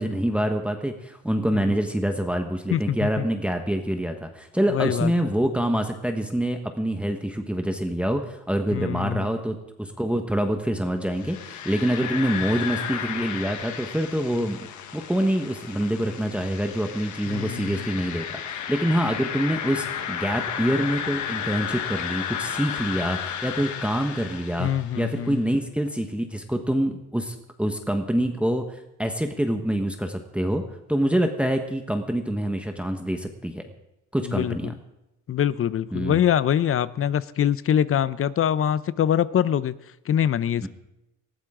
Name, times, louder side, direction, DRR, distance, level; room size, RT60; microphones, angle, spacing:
voice 1, 0.0-14.7 14.9-24.7 24.9-30.6 30.9-33.6 34.1-34.7 35.9-36.2 40.6-40.7, equal, 5° right, 4 dB, 1.3 m, -26 dB
voice 2, 2.7-3.3 4.7-5.1 8.7-9.3 17.3-17.9 24.6-25.4 34.2-34.7 35.3-39.7 40.1-40.7, left 9 dB, 45° left, 17 dB, 0.6 m, -24 dB
sound 1, 11.1-25.1, left 8 dB, 75° left, 1.4 m, -33 dB
19.5 x 14.0 x 3.8 m, 0.93 s
cardioid pair, 90°, 30 cm